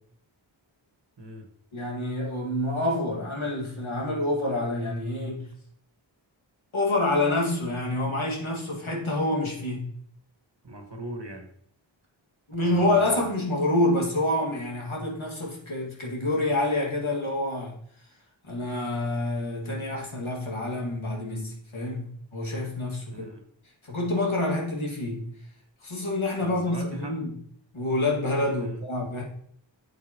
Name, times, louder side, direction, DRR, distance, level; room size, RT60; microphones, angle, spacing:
voice 1, 1.2-1.5 10.6-11.5 12.6-13.3 23.1-23.4 26.4-27.2 28.6-28.8, right 1 dB, 60° right, 1.7 m, -40 dB
voice 2, 1.7-5.5 6.7-9.9 12.5-17.8 18.5-23.3 23.8-25.3 25.8-27.4 27.7-29.2, left 2 dB, 85° left, 2.2 m, -27 dB
8.0 x 7.6 x 3.0 m
wide cardioid pair, 40°, 47 cm